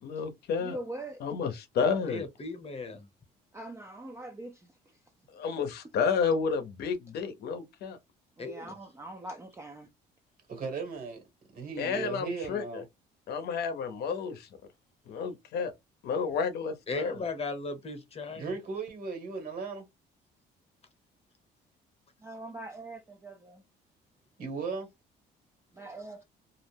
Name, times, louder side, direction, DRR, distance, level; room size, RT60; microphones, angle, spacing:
voice 1, 0.0-0.8 1.2-2.2 5.3-8.0 11.8-12.8 13.3-14.5 15.1-15.7 16.0-17.2, left 5 dB, 70° left, 0.7 m, -31 dB
voice 2, 0.6-1.2 3.5-5.0 8.4-9.9 22.2-23.6 25.7-26.2, right 1 dB, 15° right, 0.5 m, -43 dB
voice 3, 2.1-3.1 8.4-8.7 16.9-18.5, left 3 dB, 35° left, 0.9 m, -36 dB
voice 4, 10.5-11.2 11.5-12.8 18.3-19.8 24.4-24.9, right 4 dB, 55° right, 1.4 m, -36 dB
2.4 x 2.0 x 3.3 m
cardioid pair, 85°, 18 cm